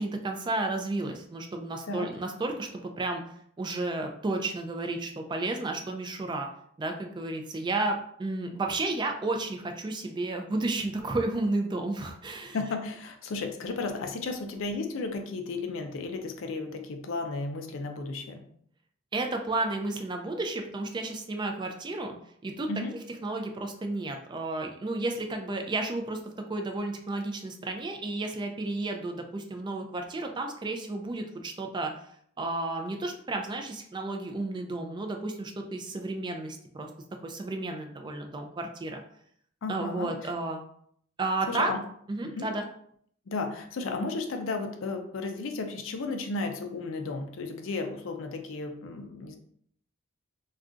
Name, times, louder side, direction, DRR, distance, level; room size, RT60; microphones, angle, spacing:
voice 1, 0.0-3.2 3.6-6.5 6.8-12.6 19.1-22.2 22.4-22.7 23.2-26.2 26.5-31.9 32.4-36.9 37.2-39.0 39.7-40.6 41.2-41.7 42.1-42.6, right 2 dB, 20° right, 4 dB, 0.3 m, -32 dB
voice 2, 12.5-18.4 22.7-22.9 39.6-40.1 41.5-41.8 42.2-42.5 43.3-49.4, left 3 dB, 65° left, 5 dB, 0.4 m, -34 dB
2.4 x 2.3 x 3.8 m, 0.64 s
head